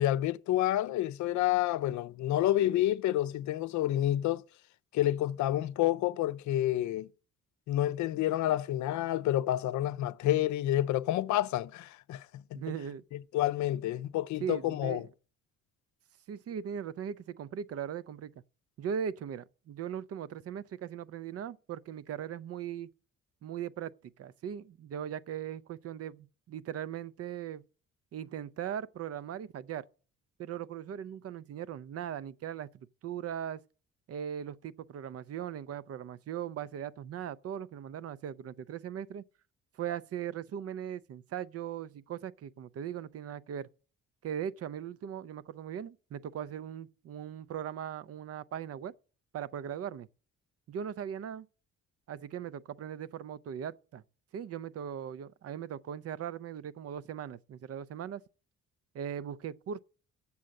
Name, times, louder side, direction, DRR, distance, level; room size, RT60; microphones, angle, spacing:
voice 1, 0.0-4.4 4.9-7.1 7.7-12.3 12.5-12.6 13.1-15.0, left 13 dB, 70° left, 0.5 m, -29 dB
voice 2, 12.5-13.0 14.4-15.0 16.3-18.3 18.8-22.9 23.4-27.6 28.1-29.8 30.4-33.6 34.1-39.2 39.7-43.7 44.2-48.9 49.3-50.1 50.7-51.5 52.1-54.0 54.3-58.2 58.9-59.8, right 9 dB, 50° right, 0.5 m, -39 dB
7.5 x 7.0 x 6.4 m
cardioid pair, 90°, 30 cm